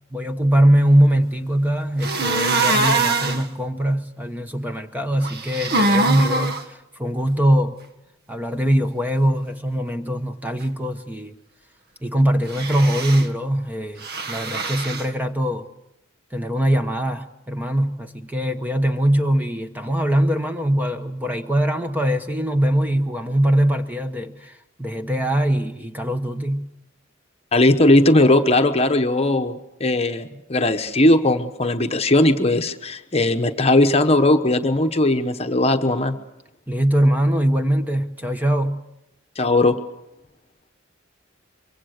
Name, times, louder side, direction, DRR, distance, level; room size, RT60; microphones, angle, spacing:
voice 1, 0.1-7.8 8.3-11.3 12.0-15.7 16.3-26.6 36.7-38.8, right 1 dB, 10° right, 7 dB, 1.1 m, -22 dB
sound 1, 2.0-3.4 5.2-6.6 12.5-13.3 14.0-15.0, right 2 dB, 50° right, 1.4 m, -23 dB
voice 2, 27.5-36.2 39.4-39.7, left 1 dB, 30° left, 7 dB, 1.1 m, -18 dB
24.5 x 23.5 x 6.6 m, 0.87 s
head